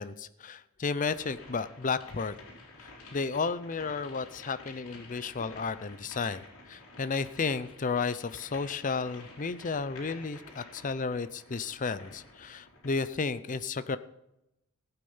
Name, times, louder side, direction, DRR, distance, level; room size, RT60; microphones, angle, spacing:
voice 1, 0.0-2.3 2.8-14.0, left 4 dB, 35° left, 13 dB, 0.5 m, -33 dB
sound 1, 1.1-13.1, left 2 dB, 65° left, 3.7 m, -51 dB
15.5 x 8.7 x 5.6 m, 0.87 s
head